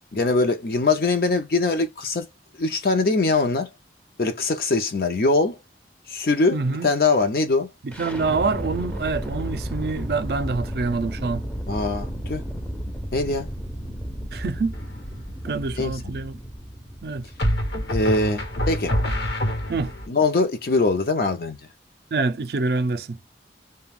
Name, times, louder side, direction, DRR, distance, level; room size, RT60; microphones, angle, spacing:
voice 1, 0.1-2.3 2.6-3.7 4.2-5.6 6.1-7.7 11.7-12.4 13.1-13.5 15.8-16.0 17.9-19.0 20.1-21.6, left 3 dB, 55° left, 0.5 m, -22 dB
voice 2, 6.5-6.9 7.8-11.4 14.3-14.7 15.4-16.4 17.0-17.2 19.7-19.9 22.1-23.2, right 3 dB, 65° right, 0.4 m, -26 dB
sound 1, 7.9-19.8, equal, 10° left, 0.5 m, -34 dB
sound 2, 14.7-15.2 17.4-20.1, equal, 70° left, 1.0 m, -25 dB
2.4 x 2.2 x 3.3 m
head